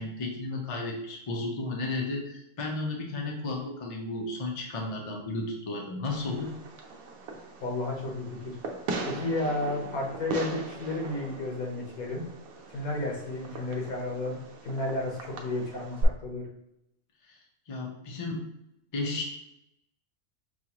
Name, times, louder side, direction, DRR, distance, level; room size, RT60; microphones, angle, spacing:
voice 1, 0.0-6.5 17.7-18.4 18.9-19.3, left 2 dB, 40° left, 0 dB, 0.5 m, -33 dB
Fireworks, 6.0-16.0, right 3 dB, 80° right, 1.1 m, -39 dB
voice 2, 7.6-8.6 9.1-12.2 12.7-16.5, left 2 dB, 80° left, -1 dB, 1.5 m, -32 dB
6.0 x 2.4 x 2.9 m, 0.84 s
omnidirectional pair, 1.5 m